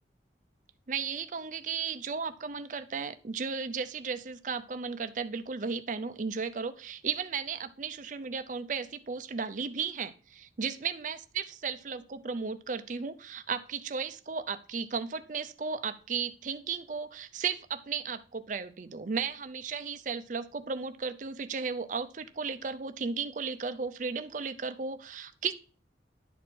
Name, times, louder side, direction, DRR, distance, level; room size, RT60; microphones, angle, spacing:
voice 1, 0.9-25.5, right 5 dB, 45° right, 10 dB, 0.5 m, -35 dB
11.0 x 4.3 x 4.5 m, 0.40 s
head